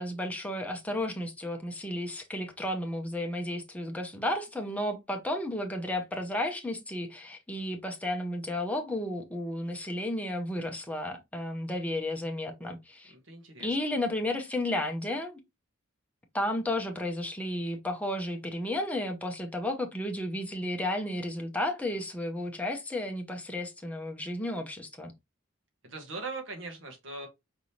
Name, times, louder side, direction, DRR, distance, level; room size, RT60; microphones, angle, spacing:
voice 1, 0.0-13.1 13.6-15.4 16.3-25.1, left 1 dB, 5° left, 0.8 m, -33 dB
voice 2, 13.2-13.7 25.8-27.3, right 3 dB, 65° right, 1.4 m, -40 dB
5.2 x 3.4 x 2.8 m
head